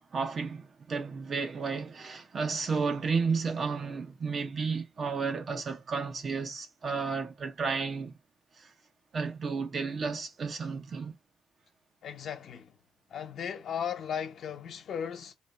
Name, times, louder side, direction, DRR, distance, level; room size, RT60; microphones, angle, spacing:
voice 1, 0.1-8.1 8.6-8.7 9.1-11.2, right 5 dB, 45° right, 0.9 m, -32 dB
voice 2, 12.0-12.8 13.1-15.3, left 8 dB, 65° left, 1.0 m, -36 dB
3.0 x 2.8 x 4.3 m
cardioid pair, 90°, 0 cm